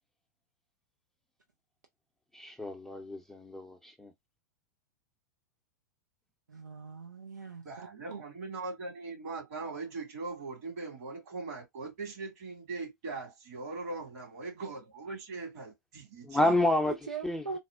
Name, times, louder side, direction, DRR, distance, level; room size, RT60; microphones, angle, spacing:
voice 1, 2.3-4.1 16.3-16.9 17.2-17.6, left 1 dB, 5° left, 0.6 m, -29 dB
voice 2, 6.5-7.7 8.1-8.2 16.8-17.6, right 5 dB, 85° right, 0.6 m, -41 dB
voice 3, 7.6-16.5, right 3 dB, 55° right, 2.2 m, -40 dB
4.2 x 2.0 x 2.5 m
figure-of-eight pair, 95°, 10 cm